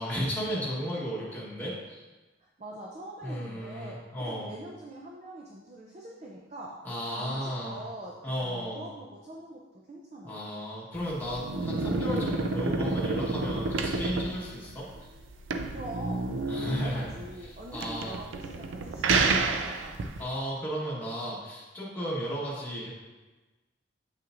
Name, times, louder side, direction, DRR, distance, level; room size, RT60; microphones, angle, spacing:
voice 1, 0.0-2.0 3.2-4.5 6.8-7.8 8.2-8.8 10.2-15.1 16.5-17.1 17.7-18.2 20.2-22.9, equal, 10° left, -7 dB, 1.4 m, -34 dB
voice 2, 2.4-6.8 7.1-9.6 9.9-10.4 15.7-20.0, right 1 dB, 35° right, -1 dB, 0.5 m, -44 dB
sound 1, 11.0-20.2, right 3 dB, 85° right, 0.4 m, -30 dB
7.4 x 5.7 x 2.5 m, 1.2 s
head